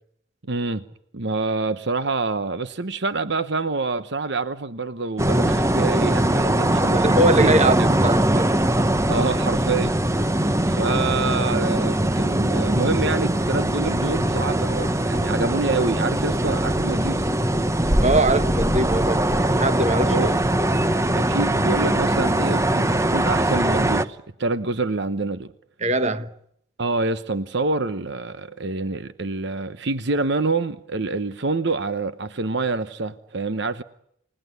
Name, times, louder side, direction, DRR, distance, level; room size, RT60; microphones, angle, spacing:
voice 1, 0.5-0.8 1.1-8.0 9.1-9.9 10.7-17.3 20.0-20.3 21.2-25.5 26.8-33.8, right 3 dB, 60° right, 1.0 m, -26 dB
sound 1, 5.2-24.0, right 1 dB, 15° right, 1.0 m, -21 dB
voice 2, 6.9-8.5 18.0-19.3 19.6-20.4 25.8-26.3, right 2 dB, 35° right, 1.3 m, -22 dB
29.5 x 19.0 x 9.7 m
head